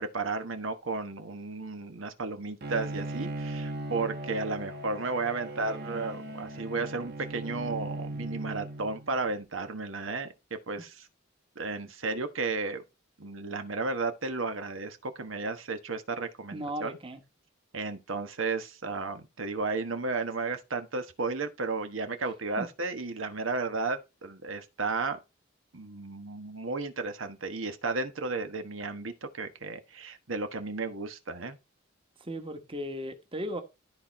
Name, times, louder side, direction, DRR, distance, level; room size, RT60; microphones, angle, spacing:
voice 1, 0.0-11.1 11.5-12.8 13.2-17.0 17.7-25.2 25.7-31.6, right 3 dB, 80° right, 1.3 m, -33 dB
Bowed string instrument, 2.6-9.3, right 1 dB, 55° right, 1.2 m, -38 dB
voice 2, 16.5-17.2 22.6-22.7 32.3-33.6, equal, 25° right, 1.4 m, -36 dB
13.0 x 4.4 x 4.3 m
head